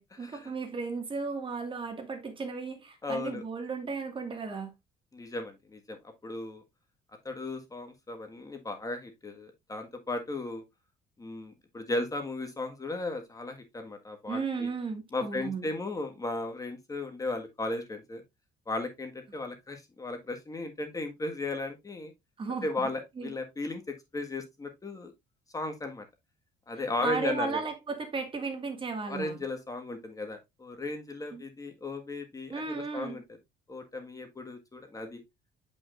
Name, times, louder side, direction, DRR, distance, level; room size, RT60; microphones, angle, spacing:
voice 1, 0.0-4.7 14.3-15.7 22.4-22.9 23.2-23.3 27.0-29.4 31.3-31.4 32.5-33.2, right 4 dB, 30° right, 1.8 m, -35 dB
voice 2, 3.0-3.4 5.1-6.6 7.2-10.6 11.2-14.7 15.1-18.2 18.7-22.1 22.6-25.1 25.5-26.0 26.7-27.6 29.1-33.2 33.7-35.2, left 2 dB, 20° left, 1.5 m, -36 dB
8.2 x 5.4 x 2.4 m
cardioid pair, 110°, 17 cm